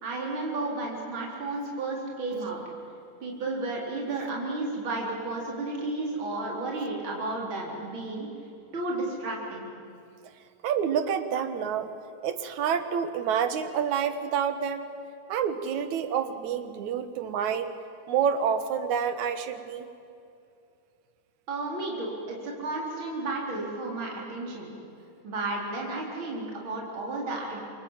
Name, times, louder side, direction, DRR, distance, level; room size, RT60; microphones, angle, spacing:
voice 1, 0.0-2.6 3.2-8.3 8.7-9.7 21.5-24.7 25.2-27.6, right 2 dB, 40° right, -2 dB, 4.8 m, -32 dB
voice 2, 10.6-11.9 12.2-14.9 15.3-17.8 18.1-19.9, right 7 dB, 70° right, 10 dB, 2.7 m, -28 dB
28.0 x 24.0 x 8.9 m, 2.6 s
omnidirectional pair, 3.6 m